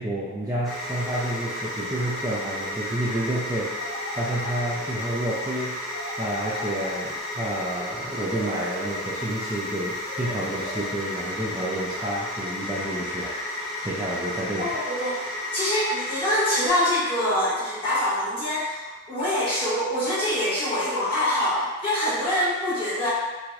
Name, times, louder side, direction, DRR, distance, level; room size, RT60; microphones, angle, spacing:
voice 1, 0.0-5.8 6.2-14.7, right 1 dB, 15° right, -7 dB, 0.3 m, -30 dB
sound 1, 0.6-16.7, left 1 dB, ahead, 0.9 m, -33 dB
sound 2, 3.8-5.0 5.9-7.4 8.1-9.3 10.0-11.2, left 1 dB, 65° left, 1.3 m, -39 dB
voice 2, 14.6-15.2 15.5-23.1, left 1 dB, 25° left, -12 dB, 1.5 m, -25 dB
5.8 x 2.0 x 2.4 m, 1.3 s
head